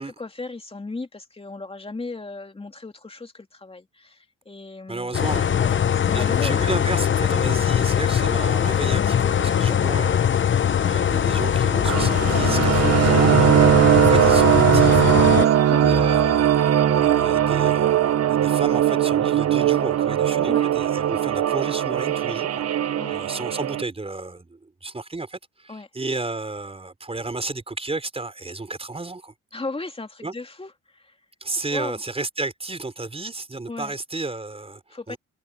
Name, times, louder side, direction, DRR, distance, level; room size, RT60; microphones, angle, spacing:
voice 1, 0.0-5.2 5.5-6.9 8.2-8.5 9.5-9.8 13.4-13.6 15.4-15.9 20.4-20.7 23.0-23.2 25.7-25.9 29.5-31.2 31.7-32.0 33.7-33.9 34.9-35.2, left 3 dB, 20° left, 2.5 m, -36 dB
voice 2, 4.9-5.6 6.1-10.3 10.8-13.5 13.9-15.3 15.8-22.6 23.1-29.3 30.2-30.3 31.4-34.8 35.1-35.2, right 3 dB, 20° right, 4.8 m, -32 dB
sound 1, 5.1-15.4, left 9 dB, 40° left, 0.8 m, -21 dB
sound 2, 8.8-17.8, left 12 dB, 80° left, 4.1 m, -37 dB
sound 3, 11.9-23.8, right 11 dB, 55° right, 1.0 m, -19 dB
cardioid pair, 90°, 30 cm